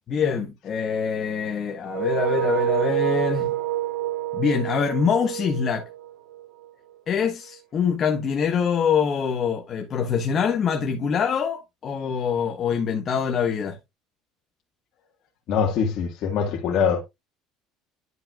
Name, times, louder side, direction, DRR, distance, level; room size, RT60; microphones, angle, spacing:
voice 1, 0.1-3.5 4.3-5.9 7.1-13.8, left 6 dB, 35° left, 1.2 m, -24 dB
sound 1, 1.8-6.7, right 14 dB, 85° right, 3.2 m, -27 dB
voice 2, 15.5-17.0, left 6 dB, 50° left, 1.7 m, -23 dB
11.0 x 5.6 x 2.4 m
cardioid pair, 140°, 0 cm